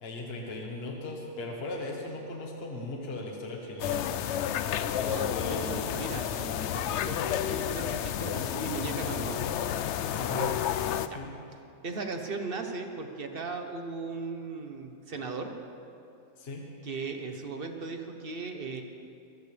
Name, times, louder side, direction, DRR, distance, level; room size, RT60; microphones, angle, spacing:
voice 1, 0.0-4.1 4.9-5.7 10.1-10.5 11.1-11.3 16.4-16.6, left 2 dB, 45° left, 0 dB, 1.6 m, -37 dB
sound 1, 3.8-11.1, left 10 dB, 65° left, 0.8 m, -31 dB
voice 2, 5.0-9.4 11.1-11.2 11.8-15.5 16.8-18.8, right 4 dB, 45° right, 5 dB, 1.2 m, -37 dB
23.0 x 14.0 x 3.4 m, 2.7 s
omnidirectional pair, 1.4 m